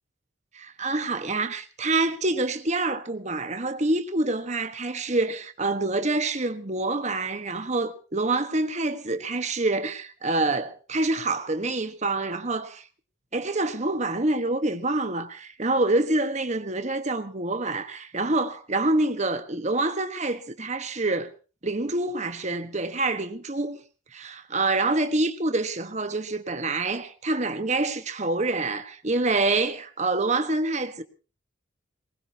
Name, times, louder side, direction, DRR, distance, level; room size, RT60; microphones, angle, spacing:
voice 1, 0.5-12.8 13.3-21.3 21.6-23.8 24.1-31.0, right 2 dB, 35° right, 1.3 m, -26 dB
22.0 x 20.0 x 2.9 m
head